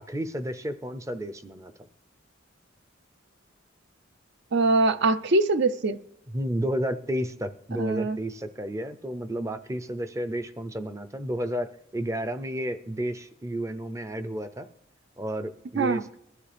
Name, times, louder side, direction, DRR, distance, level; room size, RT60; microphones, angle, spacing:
voice 1, 0.0-1.7 6.3-11.7 11.9-14.7 15.2-16.2, equal, 15° right, 0.5 m, -31 dB
voice 2, 4.5-6.0 7.8-8.2 15.8-16.0, right 2 dB, 60° right, 0.5 m, -23 dB
21.5 x 12.5 x 3.4 m
head